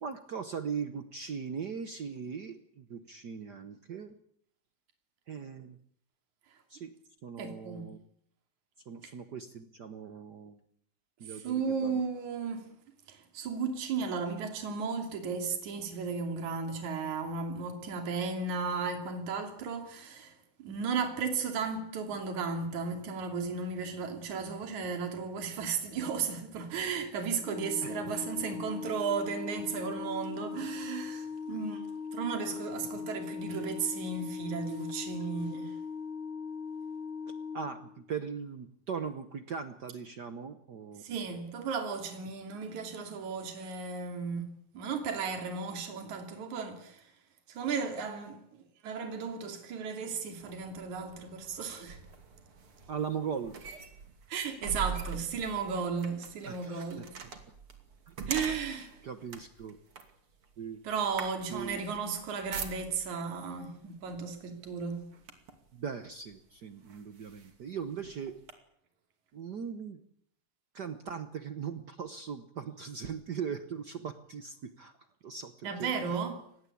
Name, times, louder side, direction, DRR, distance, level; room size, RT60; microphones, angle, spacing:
voice 1, 0.0-4.1 5.3-5.8 6.7-6.9 7.2-8.0 8.9-10.6 11.2-11.4 11.8-12.0 27.8-28.0 37.5-41.0 52.9-53.5 56.4-56.9 58.1-58.2 59.0-59.8 60.6-60.8 61.5-62.0 65.7-68.3 69.3-70.0 70.7-74.9 75.2-76.2, right 6 dB, 85° right, 0.9 m, -39 dB
voice 2, 7.4-7.9 9.0-9.1 11.2-12.7 13.1-31.8 32.1-35.8 41.0-44.4 44.7-47.1 47.5-52.0 54.3-57.1 58.3-59.0 60.8-65.0 75.6-76.4, right 5 dB, 65° right, 4.2 m, -35 dB
Organ, 27.4-38.3, left 5 dB, 55° left, 1.4 m, -40 dB
sound 1, 50.4-63.2 64.1-64.3 64.7-65.7 66.3-66.4 66.9-68.5, right 5 dB, 45° right, 3.3 m, -43 dB
25.0 x 20.0 x 8.6 m
omnidirectional pair, 3.7 m